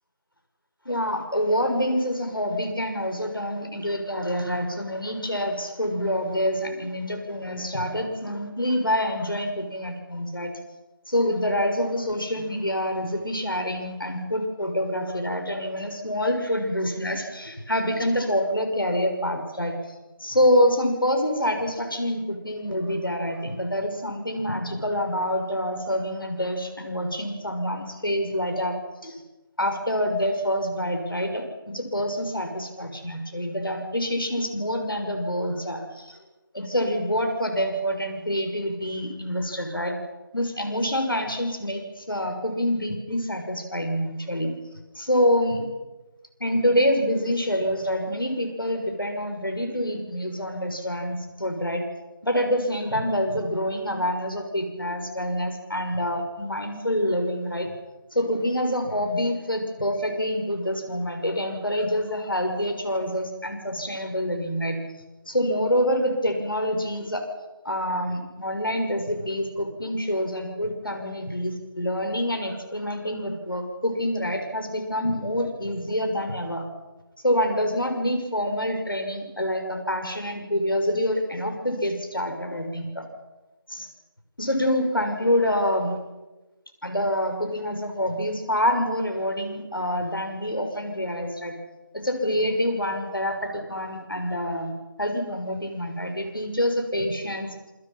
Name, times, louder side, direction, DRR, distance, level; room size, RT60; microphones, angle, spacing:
voice 1, 0.8-10.6 11.1-19.8 20.2-28.8 29.0-29.2 29.6-36.2 36.5-39.9 40.3-44.6 44.9-45.6 46.4-51.8 52.2-57.7 58.1-64.8 65.3-67.2 67.6-76.7 77.2-83.0 83.7-83.9 84.4-85.9 86.8-91.6 91.9-97.7, equal, 70° left, 5 dB, 6.5 m, -26 dB
28.0 x 26.5 x 5.9 m, 1.1 s
figure-of-eight pair, 170°, 12 cm